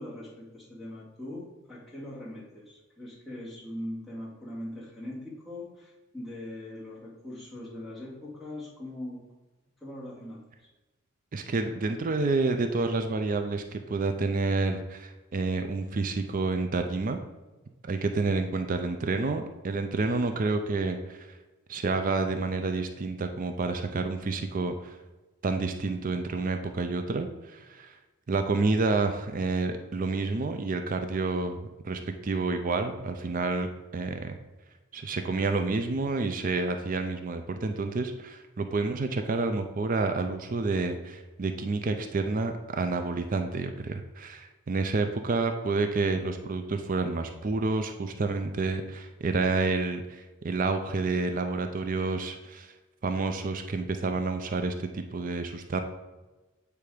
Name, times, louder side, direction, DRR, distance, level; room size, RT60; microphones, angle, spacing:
voice 1, 0.0-9.3 9.8-10.4, left 1 dB, ahead, -7 dB, 2.3 m, -41 dB
voice 2, 11.3-17.2 17.8-21.2 21.7-25.0 25.4-27.9 28.3-34.4 34.9-52.7 53.0-55.8, right 3 dB, 40° right, 7 dB, 0.4 m, -29 dB
8.5 x 3.4 x 4.9 m, 1.2 s
head